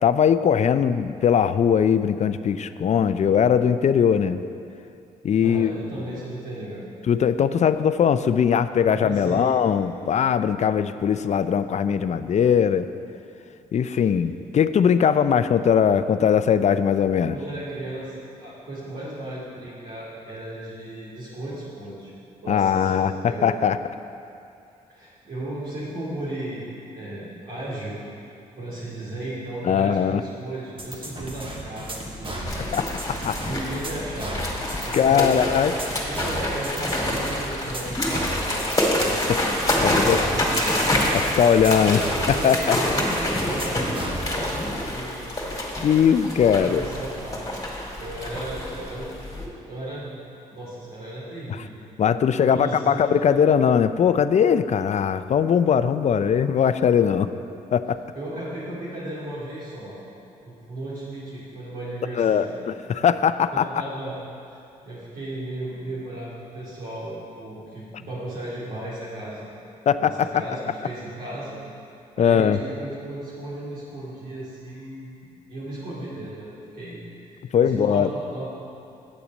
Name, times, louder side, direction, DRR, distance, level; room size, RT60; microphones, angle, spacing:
voice 1, 0.0-4.4 5.2-5.7 7.1-12.9 13.7-17.3 22.5-23.8 29.6-30.2 32.7-32.9 33.2-33.4 34.9-35.7 39.3-39.4 39.8-40.2 41.1-42.0 42.3-42.8 45.8-46.8 52.0-57.3 57.7-58.0 62.2-63.7 69.9-70.4 72.2-72.6 77.5-78.1, left 7 dB, 50° left, 12 dB, 0.4 m, -20 dB
voice 2, 5.4-6.8 8.9-9.6 13.9-14.0 17.3-22.1 22.4-23.5 24.9-27.9 28.6-32.7 33.4-34.4 34.8-35.4 36.0-39.2 39.9-40.8 41.6-45.4 46.6-47.6 48.0-49.1 49.7-50.1 50.5-51.8 52.4-53.0 58.1-60.0 60.4-62.5 63.5-64.1 64.5-64.6 64.8-69.5 70.0-71.6 72.2-77.0 77.5-78.5, right 1 dB, 70° right, -10 dB, 2.5 m, -35 dB
sound 1, 30.8-44.2, right 1 dB, 35° right, 1.6 m, -35 dB
sound 2, 32.5-49.5, left 1 dB, 25° left, 2.2 m, -27 dB
8.8 x 6.9 x 5.2 m, 2.6 s
supercardioid pair, 60°, 15 cm